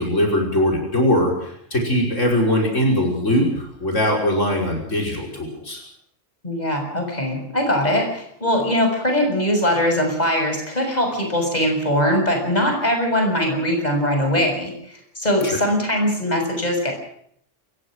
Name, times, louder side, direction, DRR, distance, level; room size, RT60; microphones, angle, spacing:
voice 1, 0.0-5.8 15.4-15.6, left 1 dB, 80° left, 0 dB, 5.9 m, -21 dB
voice 2, 6.4-14.7 15.1-16.9, equal, 35° left, 3 dB, 6.8 m, -21 dB
29.5 x 15.5 x 6.4 m, 0.67 s
omnidirectional pair, 1.3 m